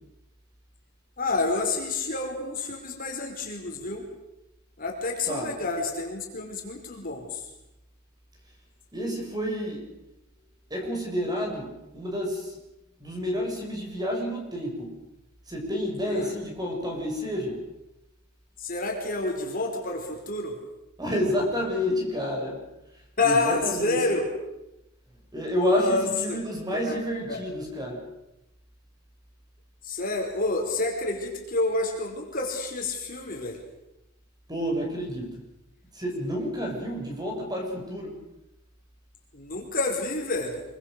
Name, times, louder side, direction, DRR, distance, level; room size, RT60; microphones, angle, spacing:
voice 1, 1.2-4.0 4.8-7.5 16.1-16.3 18.6-20.6 23.2-24.3 25.6-26.4 26.7-27.4 29.8-33.6 39.3-40.6, left 3 dB, 40° left, 2 dB, 5.0 m, -29 dB
voice 2, 8.9-9.9 10.7-12.6 13.0-15.0 15.5-17.6 21.0-22.6 23.2-24.0 25.3-28.1 34.5-35.4 35.9-38.2, equal, 20° right, 1 dB, 6.9 m, -29 dB
26.0 x 24.5 x 6.8 m, 0.93 s
head